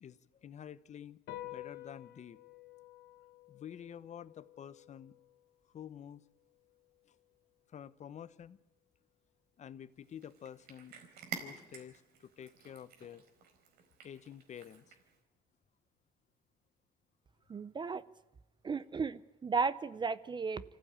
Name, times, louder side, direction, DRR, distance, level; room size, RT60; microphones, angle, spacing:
voice 1, 0.0-2.4 3.5-5.1 5.7-6.2 7.1-7.2 7.7-8.6 9.6-11.0 11.4-13.2 14.0-14.9, left 9 dB, 45° left, 16 dB, 0.9 m, -49 dB
sound 1, 1.3-8.0, left 15 dB, 80° left, 2.1 m, -52 dB
Cat, 10.0-15.2, right 7 dB, 70° right, 4.3 m, -50 dB
voice 2, 17.5-18.0 18.6-20.6, right 5 dB, 25° right, 16 dB, 0.6 m, -34 dB
25.5 x 15.5 x 8.8 m, 1.1 s
cardioid pair, 110°, 17 cm